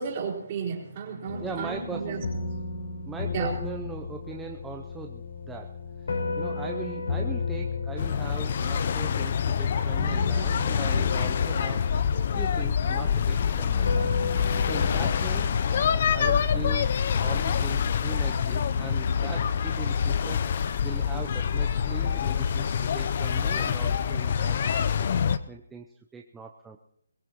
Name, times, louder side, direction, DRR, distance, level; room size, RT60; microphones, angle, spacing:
voice 1, 0.0-2.2 3.3-3.5, right 6 dB, 30° right, -3 dB, 4.2 m, -33 dB
sound 1, 1.3-16.7, left 4 dB, 70° left, 4.7 m, -34 dB
voice 2, 1.4-2.3 3.1-5.8 6.0-11.9 12.3-14.2 14.7-16.9 17.2-25.1 25.5-25.9 26.1-26.8, right 5 dB, 5° right, 2 dB, 0.7 m, -40 dB
sound 2, 8.0-25.4, left 7 dB, 45° left, 0.7 m, -26 dB
23.0 x 17.5 x 3.1 m, 0.72 s
hypercardioid pair, 160°, 0 cm